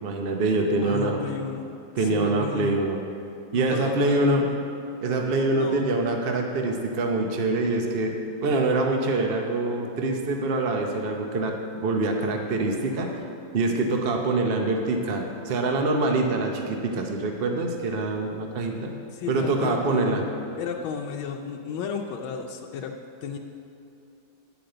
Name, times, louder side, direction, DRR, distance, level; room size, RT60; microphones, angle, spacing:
voice 1, 0.0-1.3 2.0-3.0 3.5-4.5 5.0-11.5 11.8-13.2 13.5-18.9 19.3-20.2, right 2 dB, 60° right, 2 dB, 0.5 m, -25 dB
voice 2, 0.8-1.7 2.0-2.8 3.5-4.6 5.5-5.9 19.1-20.3 20.6-22.9 23.2-23.4, left 6 dB, 90° left, 1 dB, 1.4 m, -33 dB
10.5 x 5.1 x 7.7 m, 2.6 s
omnidirectional pair, 2.1 m